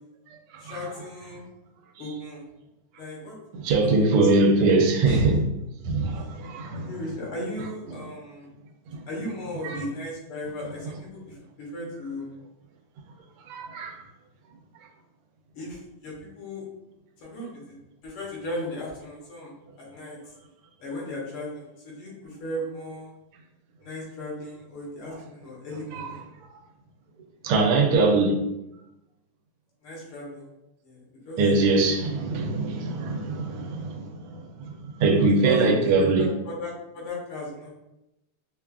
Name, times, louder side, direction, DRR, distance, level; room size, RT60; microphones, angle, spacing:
voice 1, 0.6-1.4 2.0-2.4 3.0-3.4 5.1-5.4 6.7-8.5 9.1-12.3 15.5-16.6 17.2-17.8 18.0-20.2 20.8-23.1 23.8-26.2 29.8-30.5 30.8-31.4 35.4-37.7, left 1 dB, 75° left, 2.0 m, -35 dB
voice 2, 3.5-5.4 5.8-6.9 8.9-9.0 9.6-9.8 13.5-14.0 25.9-26.1 27.4-28.4 31.4-36.3, right 3 dB, 85° right, 1.5 m, -22 dB
5.1 x 2.3 x 2.3 m
omnidirectional pair, 2.4 m